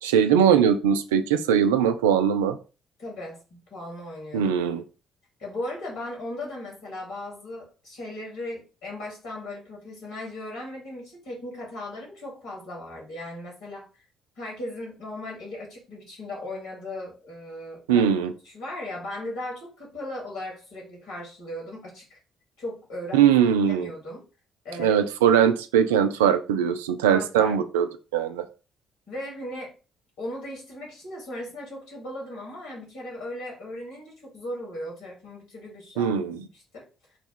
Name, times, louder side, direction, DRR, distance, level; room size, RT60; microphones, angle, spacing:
voice 1, 0.0-2.6 4.3-4.8 17.9-18.3 23.1-23.9 24.8-27.9 28.1-28.4 36.0-36.4, right 8 dB, 75° right, 9 dB, 0.3 m, -21 dB
voice 2, 3.0-3.4 3.7-4.5 5.4-13.9 14.4-18.1 18.4-22.2 22.6-23.3 23.7-24.2 24.6-25.0 27.1-27.6 29.1-29.7 30.2-36.2 36.5-36.8, left 1 dB, 70° left, -2 dB, 2.4 m, -37 dB
4.2 x 2.3 x 4.2 m, 0.33 s
figure-of-eight pair, 45°, 0 cm